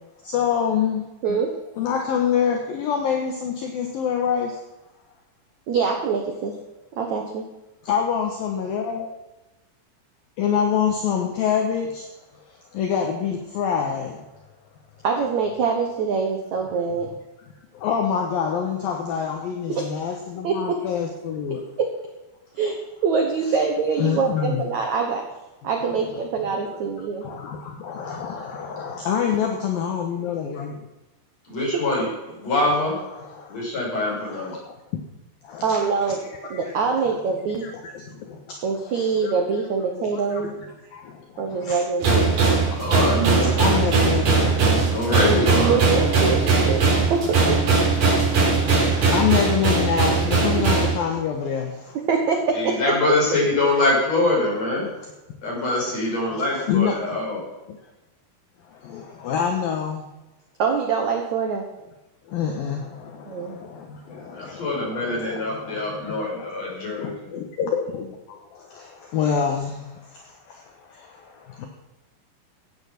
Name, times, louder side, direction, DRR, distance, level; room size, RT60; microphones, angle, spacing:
voice 1, 0.2-1.4 1.8-4.6 7.9-9.1 10.4-12.1 12.7-14.2 17.7-21.6 24.0-24.6 26.6-26.8 27.2-30.8 33.2-33.6 34.2-34.7 35.4-36.7 37.6-38.6 39.2-39.3 40.0-40.4 40.9-41.8 42.5-44.6 48.0-52.0 55.8-55.9 56.2-57.2 57.7-57.8 58.7-60.1 62.3-66.2 67.0-71.7, left 7 dB, 70° left, 2 dB, 2.5 m, -27 dB
voice 2, 1.2-1.5 5.7-6.5 7.0-7.4 15.0-17.1 19.7-20.0 20.4-20.8 22.5-22.8 23.0-25.2 25.6-27.3 31.6-31.7 35.6-36.2 36.5-37.6 38.6-40.5 41.4-42.3 45.5-46.8 47.1-47.6 50.6-50.7 52.1-52.7 60.6-61.6 63.2-63.6, right 5 dB, 70° right, 3 dB, 1.8 m, -24 dB
voice 3, 31.5-32.1 32.4-33.0 33.5-34.6 42.8-43.5 44.8-45.8 52.5-54.9 55.4-57.4 64.3-67.3, left 2 dB, 35° left, -4 dB, 6.8 m, -24 dB
sound 1, 42.0-50.9, right 4 dB, 50° right, 4.8 m, -19 dB
15.0 x 9.0 x 5.9 m, 1.0 s
omnidirectional pair, 5.2 m